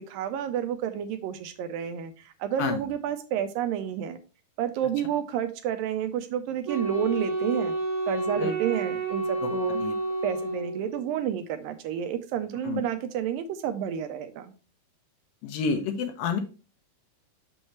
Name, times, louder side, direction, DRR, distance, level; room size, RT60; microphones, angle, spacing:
voice 1, 0.0-4.2 4.6-7.7 8.1-9.8 10.2-14.5, right 9 dB, 80° right, 8 dB, 2.1 m, -30 dB
Wind instrument woodwind instrument, 6.7-11.1, right 3 dB, 35° right, 3.0 m, -30 dB
voice 2, 9.4-9.9 12.6-12.8 15.4-16.4, left 5 dB, 75° left, 5 dB, 2.4 m, -29 dB
6.4 x 6.2 x 3.1 m, 0.34 s
omnidirectional pair, 4.5 m